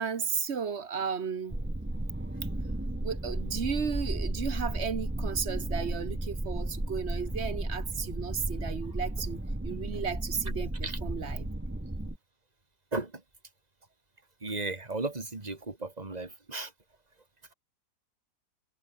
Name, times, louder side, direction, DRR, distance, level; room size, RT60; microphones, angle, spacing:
voice 1, 0.0-1.6 3.0-11.5, right 6 dB, 45° right, 1.3 m, -34 dB
sound 1, 1.5-12.2, right 1 dB, 10° right, 1.2 m, -34 dB
voice 2, 12.9-13.2 14.4-16.7, right 3 dB, 25° right, 2.7 m, -35 dB
omnidirectional pair, 1.7 m